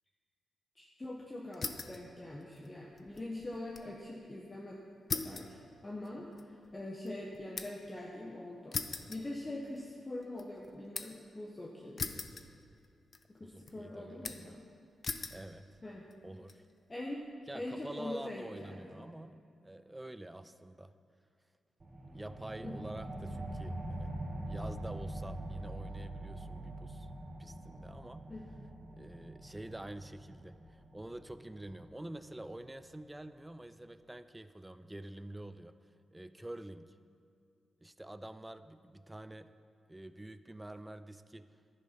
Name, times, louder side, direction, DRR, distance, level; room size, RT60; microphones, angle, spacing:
voice 1, 0.7-4.8 5.1-5.6 5.8-12.1 13.3-14.6 15.8-16.0 16.9-17.2 17.5-19.1 22.6-22.9 28.3-28.7, left 1 dB, 25° left, -2 dB, 1.3 m, -43 dB
sound 1, 1.5-2.1 2.4-3.9 4.2-4.3 5.1-7.9 8.7-9.9 10.2-11.3 12.0-12.9 13.1-13.7 14.2-14.6 15.0-15.4 16.1-16.5, left 4 dB, 45° left, 0.7 m, -41 dB
voice 2, 13.4-14.6 15.3-15.8 16.2-16.7 17.5-20.9 22.1-24.1 24.5-27.1 27.4-28.3 28.9-35.7 36.1-37.0 37.8-39.5 39.9-41.5, right 1 dB, 10° right, 12 dB, 0.5 m, -47 dB
sound 2, 21.8-32.9, right 1 dB, 35° right, 1.9 m, -44 dB
sound 3, 22.8-27.9, right 3 dB, 85° right, 1.7 m, -49 dB
11.0 x 10.0 x 6.0 m, 2.4 s
cardioid pair, 80°, 0 cm